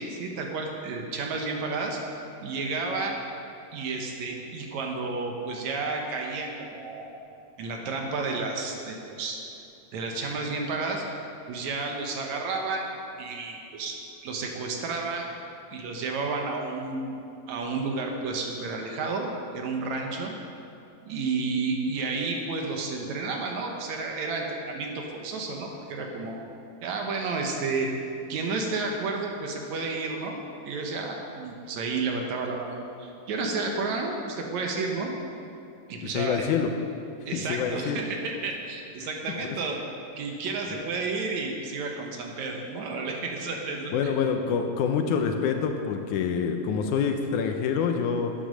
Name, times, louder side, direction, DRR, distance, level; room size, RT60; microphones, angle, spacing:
voice 1, 0.0-2.0 2.4-3.2 3.7-7.1 7.6-9.4 9.9-11.0 11.5-15.3 15.7-17.2 17.5-19.3 19.5-20.3 21.0-26.4 26.8-27.9 28.3-30.4 30.6-35.1 35.9-36.4 37.2-39.8 40.2-44.1, right 3 dB, 70° right, 1 dB, 2.1 m, -31 dB
voice 2, 36.0-36.7 37.3-38.0 39.4-39.6 40.7-40.9 43.9-48.3, left 6 dB, 80° left, 5 dB, 2.0 m, -26 dB
10.0 x 9.4 x 6.3 m, 2.7 s
omnidirectional pair, 3.8 m